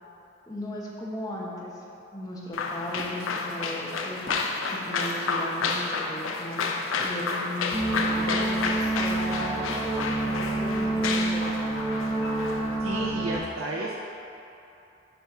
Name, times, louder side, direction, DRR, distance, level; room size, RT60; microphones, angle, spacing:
voice 1, 0.5-1.8 2.1-6.6 7.0-11.6, left 1 dB, 20° left, -4 dB, 0.8 m, -36 dB
sound 1, 2.5-12.8, left 4 dB, 80° left, 0.5 m, -30 dB
sound 2, 2.9-3.1 4.3-4.5 5.6-5.8 7.0-7.2, left 1 dB, 35° left, 1.0 m, -42 dB
sound 3, 7.7-13.4, right 2 dB, 25° right, 0.6 m, -28 dB
voice 2, 12.8-14.0, right 2 dB, 80° right, -3 dB, 0.5 m, -32 dB
6.7 x 3.0 x 5.7 m, 2.9 s
head